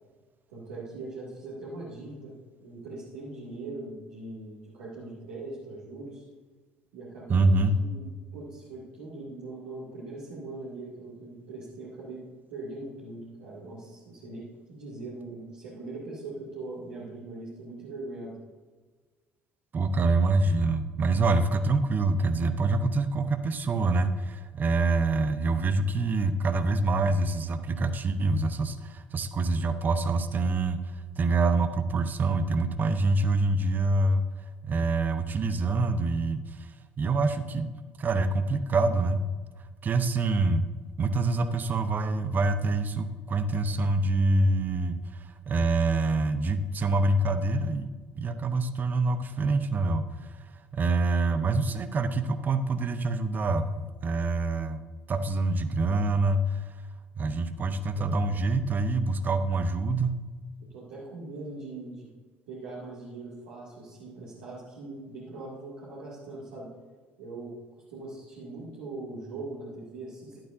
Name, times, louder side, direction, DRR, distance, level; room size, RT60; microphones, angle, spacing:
voice 1, 0.5-2.3 2.6-6.2 6.9-8.0 8.3-12.2 12.5-18.4 58.0-58.2 60.7-62.1 62.5-66.7 67.2-67.5 67.9-70.4, right 2 dB, 65° right, -8 dB, 2.2 m, -41 dB
voice 2, 7.3-7.7 19.7-34.3 34.6-37.7 38.0-39.3 39.8-40.7 41.0-50.5 50.7-54.8 55.1-56.7 57.1-60.2, right 3 dB, 35° right, 11 dB, 0.8 m, -26 dB
11.5 x 11.5 x 2.6 m, 1.4 s
figure-of-eight pair, 55°, 5 cm